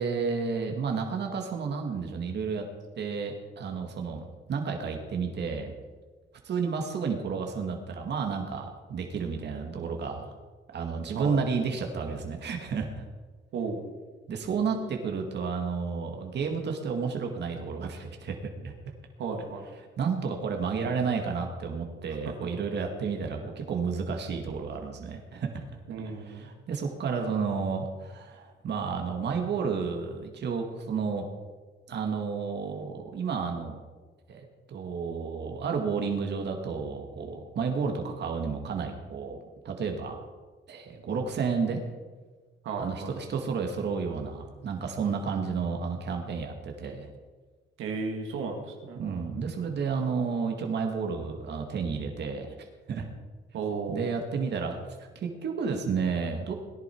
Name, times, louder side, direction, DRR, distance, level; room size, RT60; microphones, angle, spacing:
voice 1, 0.0-2.7 3.0-5.7 6.4-10.3 10.7-13.0 14.3-18.7 20.0-25.6 26.0-31.3 31.9-33.8 34.3-39.4 39.6-40.2 40.7-41.8 42.8-47.1 48.9-52.6 52.9-53.1 53.9-54.8 55.2-56.5, right 5 dB, 60° right, 3 dB, 2.2 m, -31 dB
voice 2, 19.2-19.6 22.2-22.3 25.9-26.5 42.6-43.1 47.8-49.0 53.5-54.1, right 4 dB, 85° right, 1 dB, 2.3 m, -34 dB
18.5 x 10.5 x 4.7 m, 1.3 s
cardioid pair, 90°, 20 cm